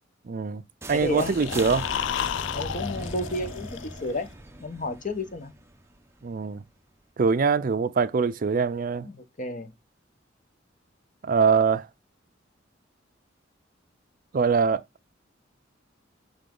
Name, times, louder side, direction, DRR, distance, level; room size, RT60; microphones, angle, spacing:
voice 1, 0.3-0.6 0.9-1.8 6.2-6.6 7.2-9.1 11.2-11.8 14.3-14.8, right 5 dB, 45° right, 0.4 m, -23 dB
sound 1, 0.8-6.6, right 1 dB, 15° right, 0.8 m, -40 dB
voice 2, 0.9-1.3 2.5-4.3 4.6-5.5 9.0-9.7, left 1 dB, 45° left, 1.1 m, -31 dB
sound 2, 1.1-4.3, left 9 dB, 75° left, 0.3 m, -32 dB
7.1 x 3.7 x 3.8 m
head